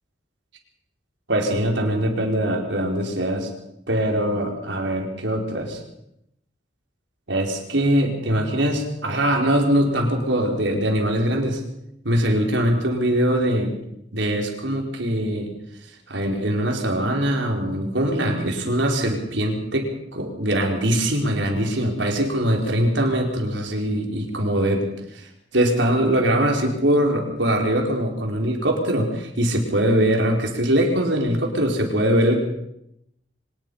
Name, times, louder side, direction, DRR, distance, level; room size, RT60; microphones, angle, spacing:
voice 1, 1.3-3.5 3.9-5.8 7.3-11.6 12.0-13.7 14.1-15.5 16.1-24.9 25.1-25.3 25.5-32.4, right 1 dB, 80° right, 2 dB, 4.8 m, -22 dB
24.5 x 19.5 x 5.7 m, 0.80 s
head